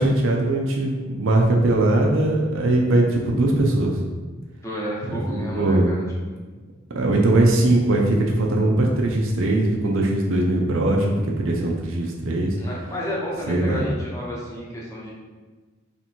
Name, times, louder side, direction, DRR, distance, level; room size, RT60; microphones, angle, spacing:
voice 1, 0.0-4.0 5.0-5.9 7.0-12.5 13.5-13.8, right 2 dB, 70° right, 0 dB, 0.5 m, -20 dB
voice 2, 4.6-6.0 6.3-6.4 12.6-15.1, equal, 15° left, -5 dB, 0.9 m, -31 dB
3.3 x 2.9 x 4.3 m, 1.3 s
head